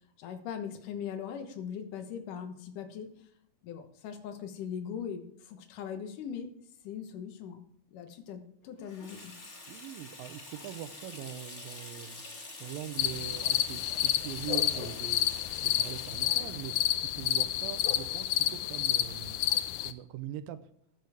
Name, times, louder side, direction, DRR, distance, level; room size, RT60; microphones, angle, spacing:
voice 1, 0.2-3.1 3.6-6.5 6.8-7.6 7.9-9.3, left 8 dB, 70° left, 7 dB, 2.7 m, -40 dB
Water tap faucet / Sink (filling or washing), 8.8-18.1, left 2 dB, 30° left, 1.4 m, -47 dB
voice 2, 9.7-12.2 12.6-15.3 15.6-16.8 17.0-19.4 19.8-20.6, right 12 dB, 85° right, 11 dB, 2.5 m, -42 dB
sound 1, 13.0-19.9, left 13 dB, 90° left, 1.7 m, -30 dB
14.5 x 10.5 x 3.5 m, 0.69 s
omnidirectional pair, 4.1 m